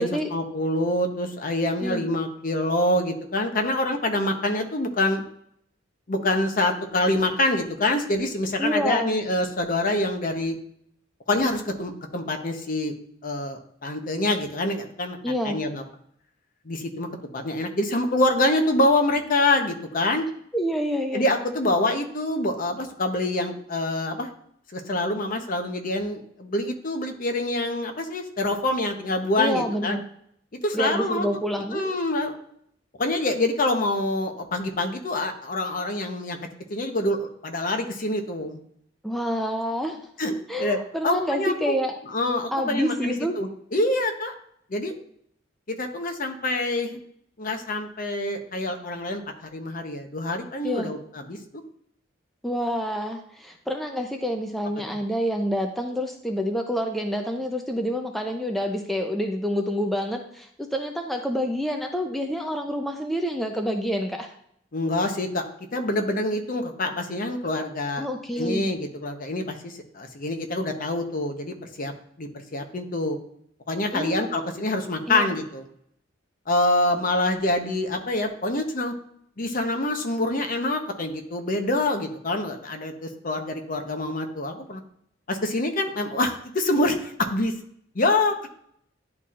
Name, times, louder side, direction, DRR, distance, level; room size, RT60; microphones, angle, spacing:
voice 1, 0.0-5.2 6.1-10.6 11.3-12.9 13.2-15.2 15.4-15.8 16.6-17.1 17.3-20.3 21.1-24.3 24.7-30.0 30.5-31.4 31.7-32.4 33.0-36.4 36.7-38.6 40.2-40.3 40.6-41.7 42.1-44.3 44.7-44.9 45.7-47.0 47.4-51.0 51.3-51.6 64.7-65.4 65.7-68.1 68.4-71.9 72.2-73.2 73.7-75.6 76.5-78.9 79.4-84.8 85.3-87.5 87.9-88.3, left 1 dB, 45° left, 5 dB, 0.8 m, -26 dB
voice 2, 8.6-9.2 15.2-15.6 20.5-21.3 29.4-30.0 30.7-32.0 39.0-40.0 40.5-41.9 42.5-43.4 50.6-50.9 52.4-64.3 68.0-68.7 73.9-74.5 75.1-75.3, equal, ahead, 2 dB, 0.5 m, -27 dB
10.5 x 4.3 x 2.4 m, 0.68 s
head